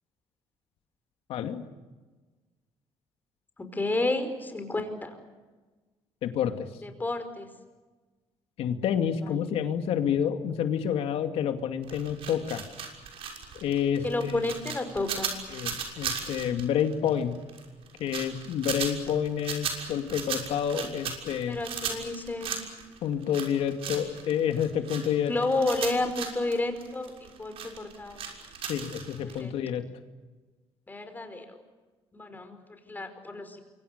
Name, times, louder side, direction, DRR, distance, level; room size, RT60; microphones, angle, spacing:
voice 1, 1.3-1.7 6.2-6.7 8.6-12.6 13.6-14.5 15.5-17.4 18.0-21.6 23.0-25.3 28.7-29.8, left 8 dB, 75° left, 6 dB, 2.5 m, -29 dB
voice 2, 3.7-5.1 6.8-7.5 9.3-9.4 14.0-15.3 21.5-22.5 25.3-28.3 29.2-29.5 30.9-31.4 32.1-33.6, left 2 dB, 20° left, 7 dB, 5.0 m, -31 dB
sound 1, 11.8-29.4, right 7 dB, 70° right, 6.4 m, -36 dB
28.0 x 25.0 x 6.8 m, 1.3 s
cardioid pair, 105°, 10 cm